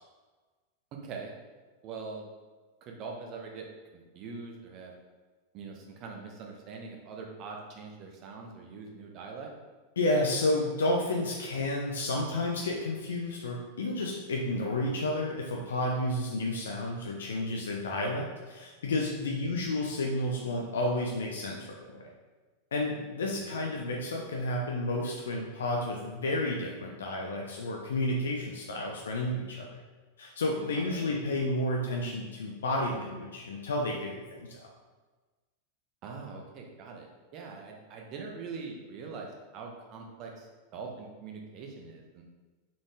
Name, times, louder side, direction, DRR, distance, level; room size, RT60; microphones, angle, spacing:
voice 1, 0.9-1.3 1.8-2.3 2.8-3.7 4.1-4.9 5.5-9.5 23.3-23.6 30.8-31.1 36.0-42.2, right 4 dB, 40° right, 0 dB, 1.3 m, -43 dB
voice 2, 10.0-22.0 22.7-29.8 30.2-34.7, left 1 dB, 65° left, -1 dB, 0.9 m, -31 dB
5.9 x 4.3 x 4.9 m, 1.3 s
figure-of-eight pair, 90°, 0 cm